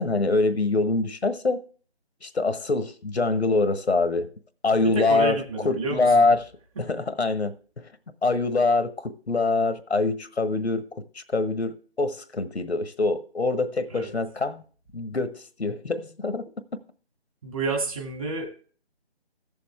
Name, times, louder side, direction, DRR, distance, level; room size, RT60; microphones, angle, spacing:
voice 1, 0.0-1.6 2.2-4.3 4.6-5.4 5.6-6.4 6.9-7.5 8.2-10.9 11.1-14.6 14.9-16.5, left 3 dB, 75° left, 1.3 m, -24 dB
voice 2, 4.7-6.2 13.9-14.1 17.4-18.5, right 3 dB, 30° right, 2.3 m, -29 dB
15.5 x 6.9 x 3.4 m
figure-of-eight pair, 160°, 33 cm